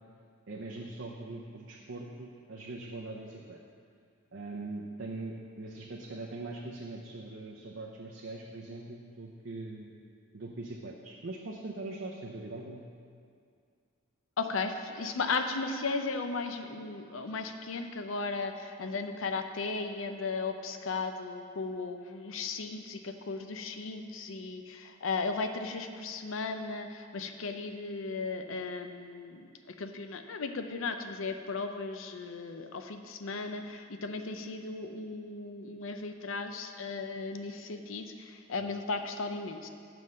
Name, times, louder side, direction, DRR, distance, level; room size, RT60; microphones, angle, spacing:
voice 1, 0.5-3.6 4.3-10.0 10.3-12.9, right 2 dB, 65° right, -2 dB, 0.7 m, -41 dB
voice 2, 14.4-39.7, left 4 dB, 80° left, 7 dB, 0.6 m, -36 dB
7.7 x 5.5 x 6.3 m, 2.3 s
head